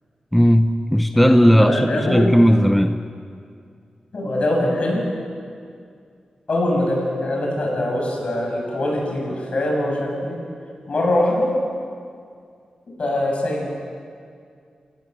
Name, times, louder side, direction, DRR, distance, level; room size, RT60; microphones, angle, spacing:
voice 1, 0.3-3.0, equal, 5° left, 8 dB, 0.8 m, -16 dB
voice 2, 1.1-2.3 4.1-5.1 6.5-10.4 10.9-11.5 13.0-13.7, left 1 dB, 55° left, -1 dB, 7.4 m, -22 dB
28.0 x 17.5 x 7.8 m, 2.3 s
wide cardioid pair, 90°, 2 cm